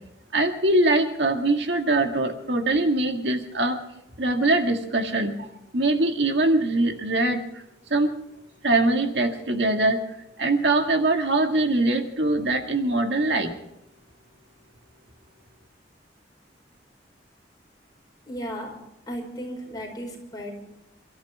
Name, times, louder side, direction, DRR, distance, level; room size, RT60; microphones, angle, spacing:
voice 1, 0.3-3.8 4.2-5.5 5.7-7.6 7.9-8.1 8.6-10.0 10.4-13.5, right 2 dB, 80° right, 4 dB, 1.9 m, -22 dB
voice 2, 18.3-18.7 19.1-20.5, equal, 25° left, 0 dB, 4.9 m, -35 dB
29.0 x 13.5 x 3.5 m, 0.82 s
head